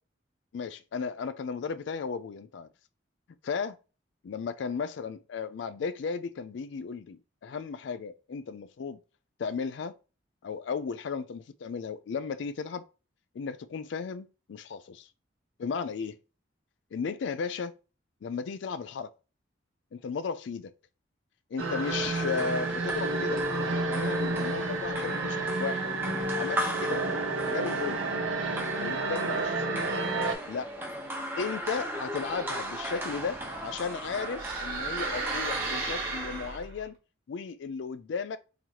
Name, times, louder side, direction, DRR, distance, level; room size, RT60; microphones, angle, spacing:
voice 1, 0.5-2.7 3.4-3.8 4.2-9.0 9.4-9.9 10.4-12.8 13.3-15.1 15.6-16.2 16.9-17.7 18.2-19.1 19.9-20.7 21.5-25.9 26.3-27.1 27.5-28.0 28.8-29.9 30.5-30.7 31.4-37.0 37.3-38.4, left 5 dB, 60° left, 0.3 m, -35 dB
sound 1, 21.6-30.3, right 2 dB, 85° right, 0.7 m, -30 dB
sound 2, 21.8-36.6, right 1 dB, 10° right, 0.8 m, -38 dB
sound 3, 32.4-36.9, right 3 dB, 50° right, 1.5 m, -36 dB
3.9 x 3.0 x 2.8 m
head